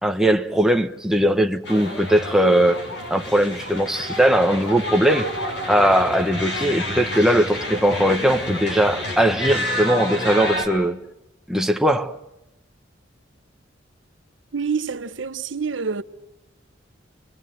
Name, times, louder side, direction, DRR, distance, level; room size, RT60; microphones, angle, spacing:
voice 1, 0.0-2.8 3.1-5.3 5.7-11.0 11.5-12.2, right 1 dB, 5° right, 1.1 m, -19 dB
sound 1, 1.6-10.7, left 1 dB, 65° left, 7.8 m, -29 dB
voice 2, 14.5-16.0, right 5 dB, 85° right, 1.0 m, -27 dB
30.0 x 24.0 x 7.7 m
head